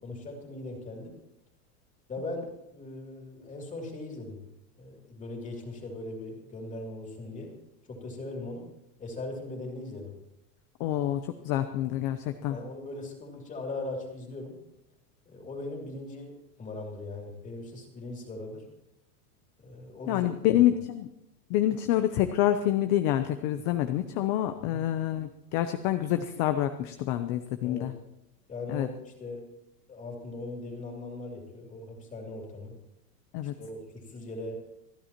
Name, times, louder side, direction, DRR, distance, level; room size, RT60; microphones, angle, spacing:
voice 1, 0.0-1.1 2.1-4.4 4.8-7.5 7.9-8.7 9.0-10.1 12.5-14.6 15.3-16.3 16.6-18.7 19.6-20.3 24.7-24.8 27.6-27.9 28.5-29.4 29.9-32.7 33.6-34.6, left 2 dB, 15° left, 1 dB, 2.8 m, -39 dB
voice 2, 10.8-12.6 20.1-21.1 21.5-27.9 28.7-28.9 33.3-33.5, left 12 dB, 35° left, 9 dB, 0.7 m, -27 dB
28.0 x 10.0 x 3.0 m, 0.85 s
supercardioid pair, 155°, 47 cm